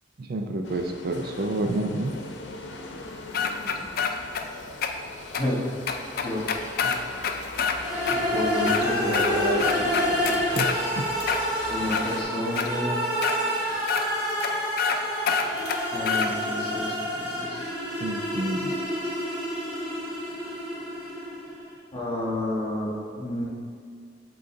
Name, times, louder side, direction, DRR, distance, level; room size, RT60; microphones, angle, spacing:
voice 1, 0.2-2.2 10.6-10.7 11.0-11.1 18.0-18.7, right 2 dB, 55° right, 4 dB, 0.5 m, -29 dB
sound 1, 0.6-12.2, left 3 dB, 85° left, 0.7 m, -40 dB
sound 2, 3.3-4.4 4.8-4.9 5.3-5.4 5.9-7.8 8.1-8.2 8.6-9.3 9.6-10.8 11.2-12.0 12.6-12.7 13.2-13.4 13.9-14.0 14.4-14.5 14.8-15.0 15.3-16.3, left 6 dB, 55° left, 0.4 m, -26 dB
sound 3, 7.7-21.6, equal, 20° right, 1.3 m, -28 dB
voice 2, 8.1-10.3 11.7-13.0 15.9-17.6 21.9-23.4, left 1 dB, 30° left, -5 dB, 1.5 m, -30 dB
8.1 x 3.9 x 3.8 m, 2.2 s
head